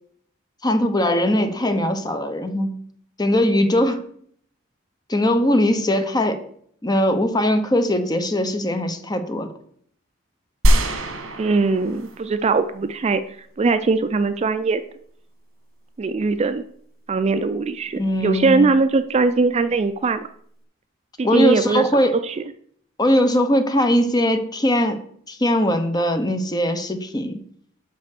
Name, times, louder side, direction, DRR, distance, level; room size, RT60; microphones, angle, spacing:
voice 1, 0.6-2.7 3.2-4.0 5.1-6.4 6.8-9.5 18.0-18.6 21.2-22.2 23.0-25.0 25.3-27.4, left 1 dB, 20° left, 8 dB, 0.8 m, -20 dB
sound 1, 10.6-12.6 12.9-13.0, right 1 dB, 80° right, 1.3 m, -21 dB
voice 2, 11.4-13.2 13.6-14.8 16.0-16.6 17.1-20.3 21.2-21.9 22.2-22.4, right 4 dB, 30° right, 11 dB, 0.4 m, -20 dB
5.7 x 5.3 x 6.6 m, 0.63 s
head